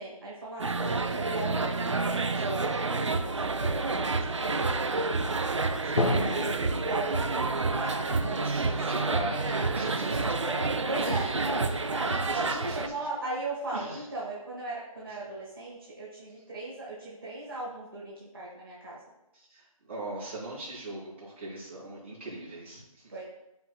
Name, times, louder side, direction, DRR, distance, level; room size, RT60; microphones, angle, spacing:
voice 1, 0.0-4.8 5.5-6.5 6.9-8.9 10.4-19.0 23.1-23.2, right 2 dB, 40° right, -7 dB, 1.4 m, -38 dB
sound 1, 0.6-12.9, right 3 dB, 55° right, 0.5 m, -29 dB
Drum, 6.0-9.7, left 2 dB, 55° left, 1.0 m, -33 dB
voice 2, 8.8-10.5 11.0-11.3 12.3-12.9 13.7-14.1 19.3-23.1, right 1 dB, 20° right, -10 dB, 2.7 m, -39 dB
12.5 x 4.5 x 2.3 m, 0.91 s
figure-of-eight pair, 180°, 19 cm